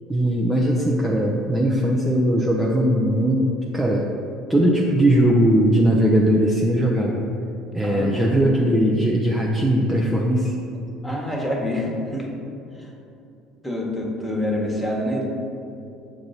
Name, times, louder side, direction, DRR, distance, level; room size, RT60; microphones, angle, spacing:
voice 1, 0.1-4.0 4.5-7.2 7.7-10.5, right 1 dB, 5° right, -3 dB, 0.6 m, -19 dB
voice 2, 7.8-8.5 11.0-12.3 12.8-12.9 13.6-15.3, left 1 dB, 10° left, -1 dB, 1.3 m, -26 dB
6.9 x 2.6 x 5.6 m, 2.8 s
hypercardioid pair, 65°, 0 cm